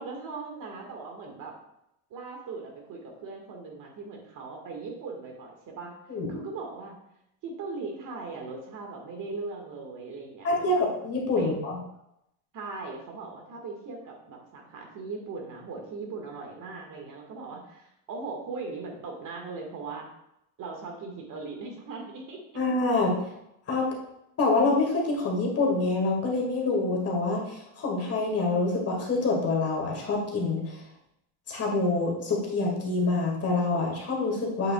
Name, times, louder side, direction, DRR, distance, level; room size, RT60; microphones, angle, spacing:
voice 1, 0.0-1.6 2.1-5.9 6.3-7.0 7.4-10.8 11.4-11.5 12.5-20.1 20.6-22.4, right 4 dB, 45° right, 1 dB, 1.8 m, -39 dB
voice 2, 10.4-10.8 11.0-11.8 22.6-23.3 23.7-23.9 24.4-30.8 31.5-34.7, left 3 dB, 35° left, -1 dB, 2.0 m, -26 dB
8.1 x 6.8 x 2.3 m, 0.82 s
supercardioid pair, 120°, 44 cm